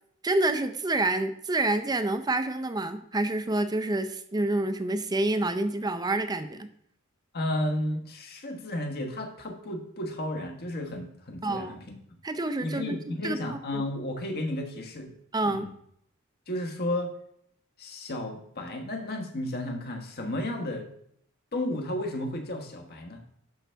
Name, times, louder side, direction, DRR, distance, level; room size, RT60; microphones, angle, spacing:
voice 1, 0.2-6.7 11.4-11.8 12.2-13.8 15.3-15.7, right 2 dB, 20° right, 10 dB, 0.5 m, -28 dB
voice 2, 7.3-12.0 12.6-15.1 15.4-15.7 16.5-17.1 17.8-20.9 21.5-23.2, left 1 dB, 50° left, 4 dB, 1.3 m, -33 dB
11.5 x 5.5 x 3.5 m, 0.69 s
head